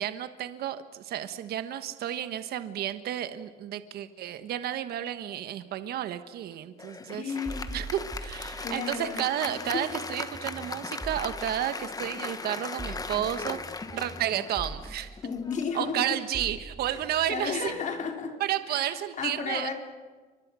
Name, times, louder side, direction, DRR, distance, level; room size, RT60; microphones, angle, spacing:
voice 1, 0.0-7.3 7.7-15.2 15.7-17.7 18.4-19.7, right 11 dB, 70° right, 10 dB, 1.3 m, -32 dB
Applause, 6.8-16.6, left 4 dB, 20° left, 1.3 m, -39 dB
voice 2, 7.1-7.7 8.6-9.2 9.7-9.9 15.2-16.1 16.9-17.0 17.3-18.4 18.7-18.9 19.2-19.7, left 5 dB, 45° left, 3 dB, 4.5 m, -33 dB
sound 1, 7.5-9.2 9.5-18.1, right 1 dB, 5° right, 2.7 m, -43 dB
29.5 x 24.5 x 6.3 m, 1.4 s
cardioid pair, 110°, 17 cm